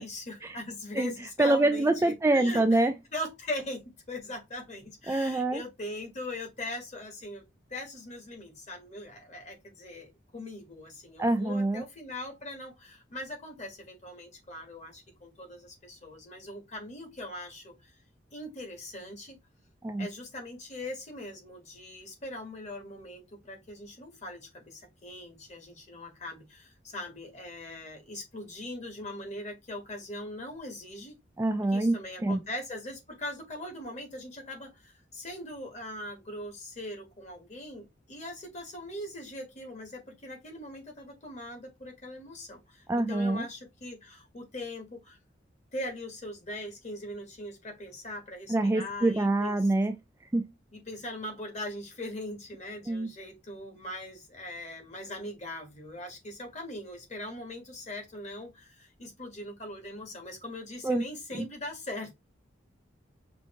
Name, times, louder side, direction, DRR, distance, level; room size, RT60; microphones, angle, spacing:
voice 1, 0.0-2.8 3.1-7.4 7.7-10.1 10.3-17.9 18.3-19.4 20.0-31.2 31.7-45.2 45.7-49.6 50.7-62.1, left 1 dB, 35° left, 1.4 m, -41 dB
voice 2, 1.4-2.9 5.1-5.6 11.2-11.8 19.8-20.1 31.4-32.4 42.9-43.5 48.5-50.0 50.3-50.5 52.9-53.1 60.8-61.0 61.4-61.5, right 2 dB, 15° right, 0.3 m, -25 dB
5.5 x 2.6 x 3.1 m
head